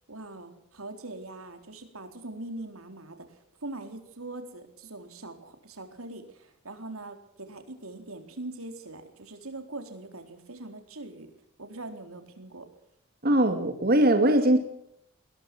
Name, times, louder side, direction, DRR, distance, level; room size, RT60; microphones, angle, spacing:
voice 1, 0.1-11.3 11.6-12.7, right 2 dB, 90° right, 7 dB, 4.0 m, -42 dB
voice 2, 13.2-14.6, right 1 dB, 45° right, 6 dB, 2.4 m, -21 dB
21.0 x 20.5 x 6.1 m, 0.72 s
head